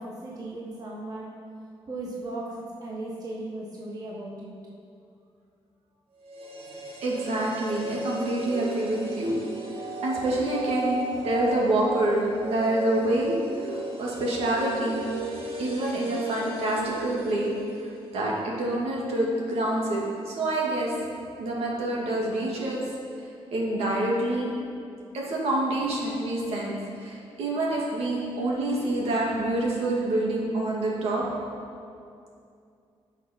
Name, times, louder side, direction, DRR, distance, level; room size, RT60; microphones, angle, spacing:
voice 1, 0.0-1.3 1.9-4.5, right 2 dB, 35° right, -3 dB, 1.3 m, -36 dB
sound 1, 6.2-18.3 18.6-18.7, right 2 dB, 60° right, 2.0 m, -35 dB
voice 2, 7.0-9.4 10.0-13.3 13.6-15.0 15.6-17.5 18.1-20.9 21.4-22.8 23.5-24.5 25.1-26.8 27.0-31.2, right 1 dB, 75° right, -4 dB, 2.4 m, -27 dB
17.5 x 6.0 x 4.5 m, 2.5 s
wide cardioid pair, 155°, 10 cm